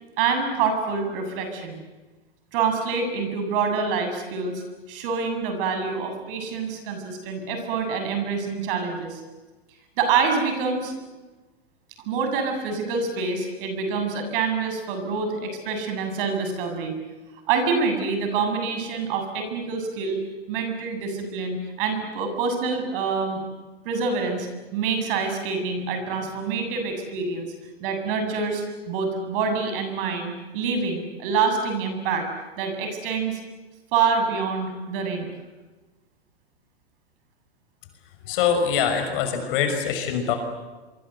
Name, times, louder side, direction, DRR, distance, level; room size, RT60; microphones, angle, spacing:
voice 1, 0.2-1.8 2.5-4.6 4.9-9.2 10.0-10.9 12.1-17.0 17.5-20.2 20.5-23.4 23.8-27.5 27.8-32.3 32.6-33.4 33.9-35.3, right 5 dB, 55° right, 6 dB, 7.7 m, -26 dB
voice 2, 38.2-40.4, left 7 dB, 55° left, 6 dB, 5.7 m, -23 dB
27.0 x 24.5 x 8.0 m, 1.2 s
hypercardioid pair, 115°, 32 cm